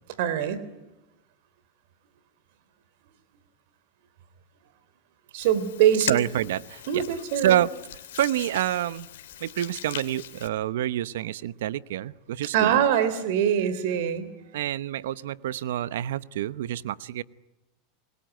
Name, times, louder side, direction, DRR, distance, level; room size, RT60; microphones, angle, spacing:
voice 1, 0.2-0.7 5.3-6.2 6.9-7.6 12.5-14.3, right 9 dB, 65° right, 15 dB, 3.6 m, -23 dB
Hands, 5.4-10.5, left 12 dB, 90° left, 2.5 m, -39 dB
voice 2, 6.0-7.0 7.4-7.7 8.1-9.1 9.4-12.8 14.5-17.2, right 12 dB, 85° right, 18 dB, 0.9 m, -27 dB
28.5 x 21.0 x 9.1 m, 1.0 s
supercardioid pair, 140°, 0 cm